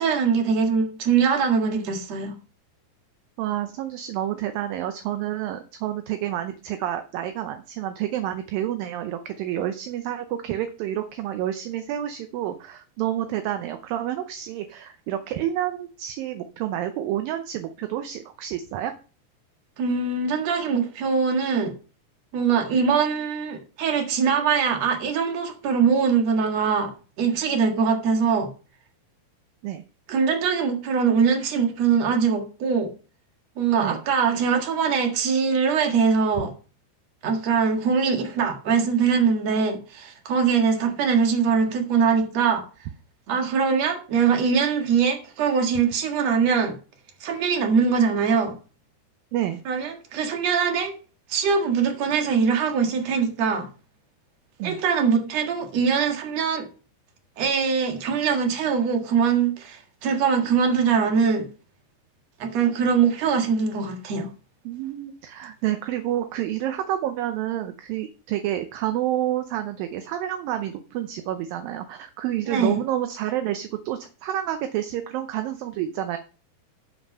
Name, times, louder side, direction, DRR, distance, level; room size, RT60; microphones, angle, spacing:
voice 1, 0.0-2.4 19.8-21.7 22.3-26.9 27.2-28.5 30.1-32.9 33.6-36.5 37.2-42.6 43.3-46.7 47.2-48.5 49.7-50.9 51.3-53.7 54.6-56.7 57.4-61.5 62.4-64.3 72.5-72.8, right 6 dB, 50° right, 2.5 m, -22 dB
voice 2, 3.4-18.9 29.6-29.8 33.8-34.0 49.3-49.6 54.6-54.8 64.7-76.2, right 12 dB, 75° right, 2.2 m, -29 dB
10.5 x 5.7 x 5.4 m
omnidirectional pair, 4.6 m